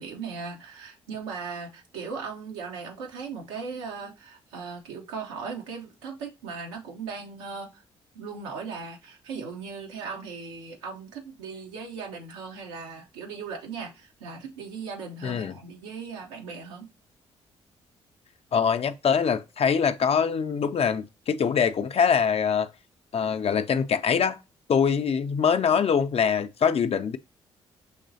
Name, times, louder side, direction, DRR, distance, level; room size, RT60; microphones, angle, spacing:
voice 1, 0.0-7.8 8.1-16.9, right 5 dB, 90° right, 0.8 m, -38 dB
voice 2, 15.2-15.6 18.5-22.7 23.1-24.4 24.7-27.2, left 7 dB, 45° left, 0.5 m, -23 dB
6.4 x 3.0 x 2.7 m
hypercardioid pair, 45°, 14 cm